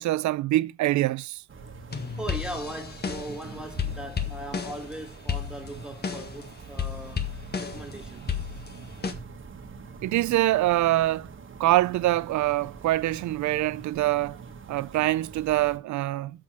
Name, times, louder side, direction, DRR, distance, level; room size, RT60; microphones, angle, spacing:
voice 1, 0.0-1.4 10.0-11.3 11.6-14.4 14.7-16.3, right 16 dB, 70° right, 0.5 m, -24 dB
sound 1, 1.5-15.8, right 4 dB, 40° right, 1.7 m, -44 dB
sound 2, 1.9-3.4 3.8-4.9 5.3-6.4 6.8-7.9 8.3-9.1, left 6 dB, 35° left, 1.5 m, -32 dB
voice 2, 2.2-7.3 7.6-8.3, right 1 dB, 5° right, 2.2 m, -39 dB
7.6 x 6.3 x 7.4 m
cardioid pair, 90°, 30 cm